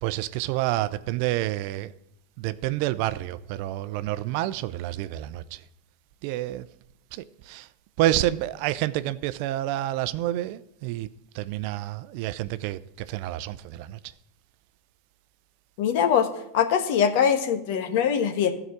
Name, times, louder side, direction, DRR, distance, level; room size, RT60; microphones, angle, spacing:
voice 1, 0.0-1.9 2.4-5.6 6.2-6.7 7.1-7.7 8.0-11.1 11.3-14.0, right 15 dB, 60° right, 0.5 m, -28 dB
voice 2, 15.8-16.3 16.5-18.5, left 8 dB, 65° left, 1.2 m, -22 dB
13.0 x 4.9 x 7.8 m
hypercardioid pair, 100°, 0 cm